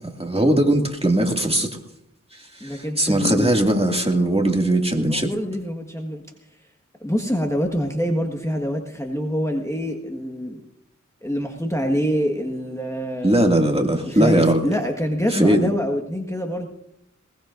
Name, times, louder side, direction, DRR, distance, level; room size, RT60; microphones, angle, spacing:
voice 1, 0.0-1.7 2.6-5.3 13.2-14.6 15.3-15.7, right 1 dB, 20° right, 2 dB, 2.2 m, -19 dB
voice 2, 2.6-3.5 5.0-6.2 7.0-10.6 11.2-13.4 14.0-16.7, equal, 10° left, 2 dB, 1.5 m, -25 dB
21.0 x 20.0 x 2.6 m, 0.79 s
wide cardioid pair, 40°, 31 cm